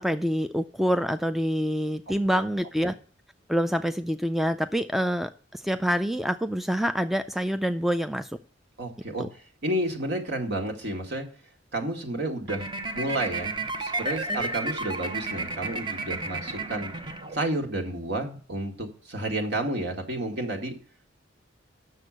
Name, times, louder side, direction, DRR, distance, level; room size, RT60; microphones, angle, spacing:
voice 1, 0.0-2.9 3.5-8.3 9.2-9.3 14.3-14.4, equal, ahead, 9 dB, 0.3 m, -26 dB
voice 2, 8.8-9.3 9.6-11.3 11.7-12.6 12.9-16.9 17.3-20.7, right 1 dB, 65° right, 3 dB, 2.1 m, -31 dB
sound 1, 12.5-17.7, right 2 dB, 25° right, 0.8 m, -32 dB
8.0 x 6.7 x 6.4 m, 0.42 s
head